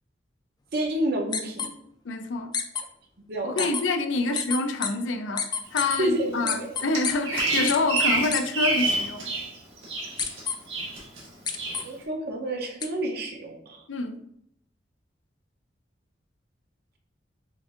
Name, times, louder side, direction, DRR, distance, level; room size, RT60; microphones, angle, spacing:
voice 1, 0.7-1.7 3.3-3.7 4.3-4.4 6.0-6.8 11.8-13.8, right 1 dB, 60° right, 0.7 m, -29 dB
sound 1, 1.3-1.7 2.5-2.8 3.6-3.8 4.3-4.9 5.4-6.0 6.5-7.1 7.7-8.0 8.3-8.4 10.2-10.5 11.5-11.8 12.8-12.9, left 6 dB, 20° left, 0.3 m, -27 dB
voice 2, 2.1-2.5 3.4-9.3 13.9-14.2, left 3 dB, 80° left, 0.5 m, -27 dB
Bird vocalization bird call bird song, 6.9-9.5 9.8-10.4 10.7-11.2 11.6-11.8, right 2 dB, 80° right, 1.6 m, -27 dB
7.0 x 2.6 x 2.4 m
head